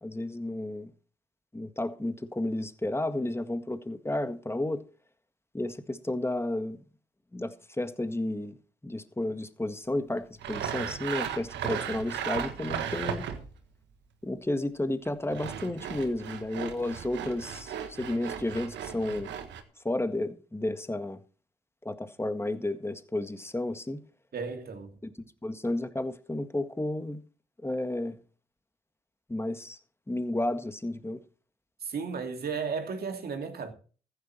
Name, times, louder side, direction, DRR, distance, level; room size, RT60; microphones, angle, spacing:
voice 1, 0.0-0.9 1.5-4.8 5.5-6.8 7.3-8.6 8.8-13.3 14.2-19.3 19.9-21.2 21.9-24.0 25.0-25.1 25.4-27.2 27.6-28.2 29.3-29.8 30.1-31.2, left 1 dB, 15° left, 1.7 m, -32 dB
Sawing, 10.4-13.6 15.0-19.6, right 9 dB, 75° right, 1.5 m, -36 dB
voice 2, 24.3-25.0 31.8-33.7, right 5 dB, 60° right, 2.5 m, -34 dB
14.5 x 9.3 x 4.4 m
hypercardioid pair, 40°, 18 cm